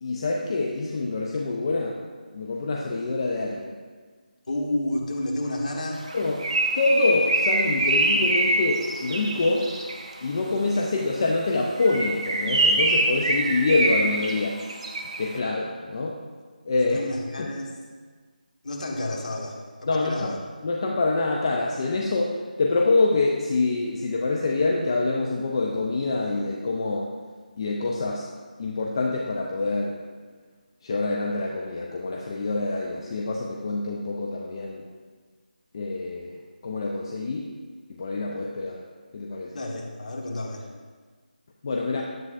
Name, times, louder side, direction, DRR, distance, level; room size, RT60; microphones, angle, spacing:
voice 1, 0.0-2.0 2.3-3.7 6.1-6.5 6.8-9.7 10.2-14.6 15.2-16.2 16.7-17.0 17.4-17.5 19.9-27.1 27.6-28.3 28.6-30.0 30.8-34.8 35.7-37.5 38.0-38.8 39.1-39.5 41.6-42.0, left 3 dB, 30° left, -1 dB, 0.5 m, -26 dB
voice 2, 4.5-6.1 16.8-17.7 18.6-20.4 39.5-40.7, left 1 dB, 55° left, -1 dB, 1.4 m, -30 dB
Bird, 6.0-10.1 11.7-15.3, right 2 dB, 35° right, 0.7 m, -24 dB
10.0 x 7.6 x 2.5 m, 1.5 s
figure-of-eight pair, 160°, 5 cm